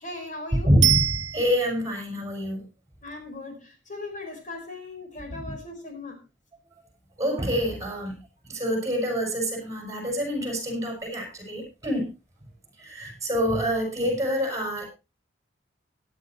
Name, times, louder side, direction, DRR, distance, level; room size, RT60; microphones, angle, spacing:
voice 1, 0.0-0.7 3.0-6.2, left 2 dB, 40° left, 4.5 m, -38 dB
voice 2, 0.6-2.6 5.3-5.6 7.2-8.1 8.5-12.1 12.8-14.9, equal, 15° right, 6.3 m, -26 dB
Bicycle bell, 0.8-1.9 11.0-11.1, right 14 dB, 85° right, 1.2 m, -25 dB
18.0 x 10.5 x 3.0 m
head